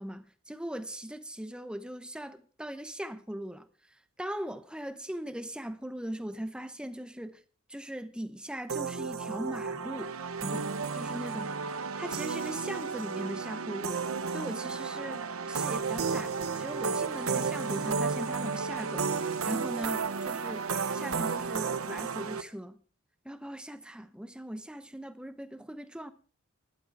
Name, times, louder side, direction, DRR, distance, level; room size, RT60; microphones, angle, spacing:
voice 1, 0.0-7.4 7.7-10.1 10.4-11.5 12.0-22.8 23.2-26.1, equal, 5° right, 0.8 m, -40 dB
sound 1, 8.7-22.4, right 5 dB, 85° right, 0.9 m, -33 dB
12.5 x 11.5 x 4.7 m
head